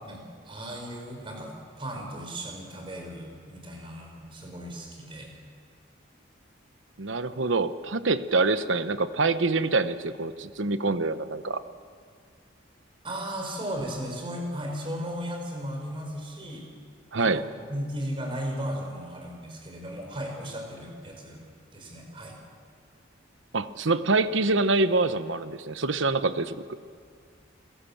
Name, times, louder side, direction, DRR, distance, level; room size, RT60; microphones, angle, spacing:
voice 1, 0.0-5.3 13.0-16.6 17.2-21.4 21.7-22.4, equal, 25° right, 1 dB, 5.0 m, -36 dB
voice 2, 7.0-11.6 17.1-17.4 23.5-26.6, right 3 dB, 75° right, 12 dB, 1.0 m, -25 dB
29.5 x 17.0 x 7.3 m, 2.1 s
head